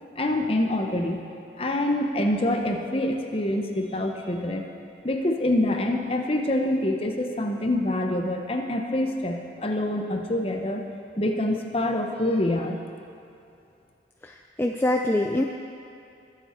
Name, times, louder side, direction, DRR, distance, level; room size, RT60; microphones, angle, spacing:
voice 1, 0.2-1.2 1.6-4.6 5.0-10.8 11.2-12.8, left 1 dB, 30° left, 3 dB, 0.9 m, -26 dB
voice 2, 14.2-15.4, left 1 dB, 10° left, 2 dB, 0.4 m, -24 dB
21.0 x 7.5 x 4.5 m, 2.6 s
head